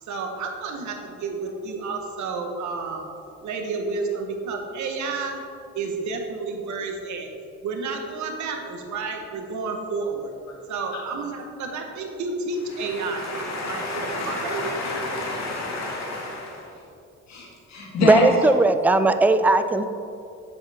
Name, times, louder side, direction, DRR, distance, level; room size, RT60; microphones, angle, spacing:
voice 1, 0.0-3.1 3.4-5.4 5.7-7.3 7.6-10.3 10.7-14.7, right 4 dB, 70° right, 3 dB, 1.2 m, -31 dB
voice 2, 12.8-16.6 17.3-18.3, left 3 dB, 60° left, -3 dB, 1.9 m, -29 dB
voice 3, 18.0-19.8, right 2 dB, 5° right, 9 dB, 0.3 m, -18 dB
7.7 x 7.2 x 3.5 m, 2.6 s
cardioid pair, 90°, 30 cm